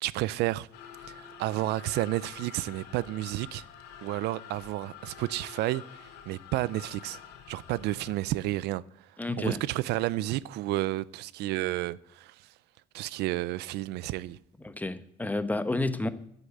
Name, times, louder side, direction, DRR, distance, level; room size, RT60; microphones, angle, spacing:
voice 1, 0.0-0.7 1.0-3.6 4.0-7.2 7.5-9.1 9.4-12.5 12.9-14.4, right 16 dB, 85° right, 0.5 m, -31 dB
sound 1, 0.7-8.1, left 9 dB, 85° left, 2.0 m, -47 dB
voice 2, 9.2-9.6 14.6-16.1, left 2 dB, 10° left, 1.0 m, -30 dB
9.9 x 8.4 x 7.9 m
cardioid pair, 110°, 17 cm